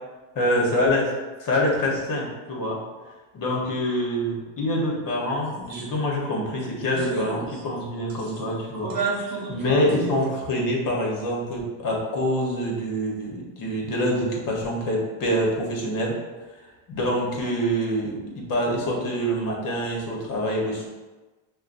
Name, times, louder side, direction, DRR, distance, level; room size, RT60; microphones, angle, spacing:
voice 1, 0.3-1.1 1.4-2.8 3.3-16.2 16.9-20.9, equal, 45° left, -2 dB, 1.3 m, -26 dB
sound 1, 5.7-5.9 6.3-6.4 6.9-7.8 8.1-8.4 8.7-10.3, right 4 dB, 45° right, 1.0 m, -31 dB
5.5 x 2.3 x 2.6 m, 1.2 s
supercardioid pair, 95°, 48 cm